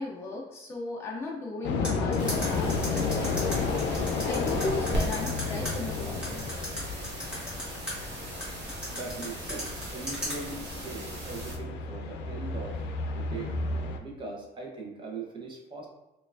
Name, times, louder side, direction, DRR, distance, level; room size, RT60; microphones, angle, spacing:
voice 1, 0.0-3.8 4.2-6.5, left 2 dB, 15° left, -3 dB, 0.4 m, -37 dB
sound 1, 1.6-14.0, left 4 dB, 85° left, 0.4 m, -32 dB
sound 2, 1.8-5.7 6.2-7.9 8.4-10.4, equal, 5° right, 1.4 m, -35 dB
sound 3, 2.2-11.6, right 1 dB, 70° right, 0.8 m, -38 dB
voice 2, 8.9-12.8 13.1-13.6 14.0-15.9, right 3 dB, 25° right, 0 dB, 0.7 m, -40 dB
4.3 x 2.3 x 2.4 m, 1.0 s
cardioid pair, 155°, 18 cm